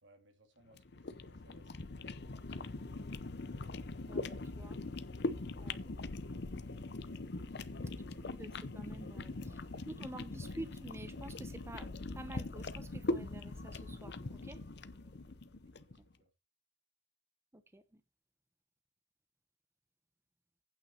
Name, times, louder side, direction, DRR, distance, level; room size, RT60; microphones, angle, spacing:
voice 1, 0.0-2.2 7.1-8.6 8.9-9.7 14.2-14.7 15.0-15.4 15.8-16.3, right 1 dB, 80° right, 2.7 m, -67 dB
sound 1, 0.7-16.0, left 2 dB, 65° left, 0.8 m, -42 dB
voice 2, 4.1-4.8 5.5-5.8 8.4-9.3 9.9-14.6 16.0-16.1 17.5-18.0, right 1 dB, 15° right, 0.7 m, -49 dB
8.9 x 6.0 x 5.7 m
head